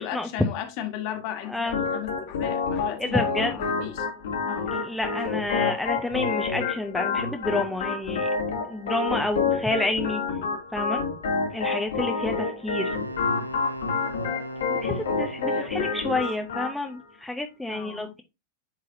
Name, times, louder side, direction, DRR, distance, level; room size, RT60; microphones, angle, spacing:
voice 1, 0.0-4.1 4.4-4.9 5.2-5.3 5.8-5.9 15.5-16.1 17.7-18.1, left 10 dB, 45° left, 1.6 m, -36 dB
Organ, 1.7-16.7, left 5 dB, 65° left, 1.7 m, -28 dB
voice 2, 3.1-3.5 4.7-8.3 8.7-10.2 10.7-11.0 11.5-13.0 14.8-18.2, left 2 dB, 5° left, 0.8 m, -29 dB
Wind instrument woodwind instrument, 12.7-15.9, right 1 dB, 90° right, 0.7 m, -37 dB
10.5 x 4.0 x 2.6 m
figure-of-eight pair, 90°, 0 cm